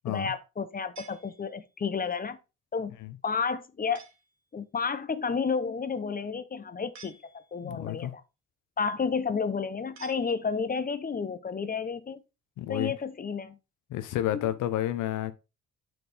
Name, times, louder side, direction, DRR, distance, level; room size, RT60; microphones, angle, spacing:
voice 1, 0.1-2.4 2.7-3.0 3.2-4.0 4.5-7.2 7.5-8.2 8.8-12.2 12.7-13.6 14.3-14.4, left 5 dB, 30° left, 0.8 m, -31 dB
sound 1, 1.0-1.9 3.9-4.4 6.9-7.8 10.0-10.8, right 5 dB, 65° right, 2.0 m, -52 dB
voice 2, 7.6-8.1 12.6-12.9 13.9-15.3, left 13 dB, 85° left, 0.9 m, -30 dB
7.0 x 6.1 x 3.4 m
cardioid pair, 90°, 30 cm